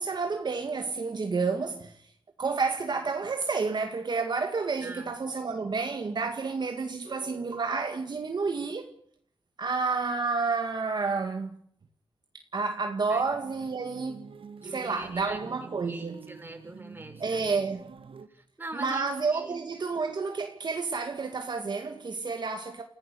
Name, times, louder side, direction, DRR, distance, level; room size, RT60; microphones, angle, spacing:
voice 1, 0.0-2.1 2.4-8.8 9.6-11.5 12.5-14.2 14.6-16.3 17.2-17.9 18.7-22.8, right 4 dB, 50° right, 2.0 m, -30 dB
voice 2, 4.8-5.1 13.1-13.2 14.6-15.4 15.8-17.7 18.3-19.6, right 2 dB, 20° right, 5.8 m, -42 dB
sound 1, 13.3-18.3, right 5 dB, 75° right, 1.7 m, -47 dB
29.5 x 16.0 x 6.9 m
wide cardioid pair, 85°, 9 cm